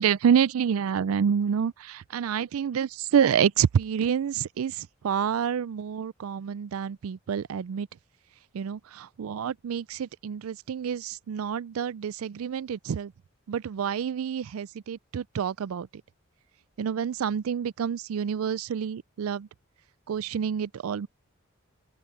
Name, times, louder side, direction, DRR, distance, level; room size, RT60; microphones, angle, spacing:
voice 1, 0.0-7.9 8.5-13.1 13.5-15.9 16.8-19.5 20.1-21.1, right 8 dB, 85° right, 0.4 m, -28 dB
open air
head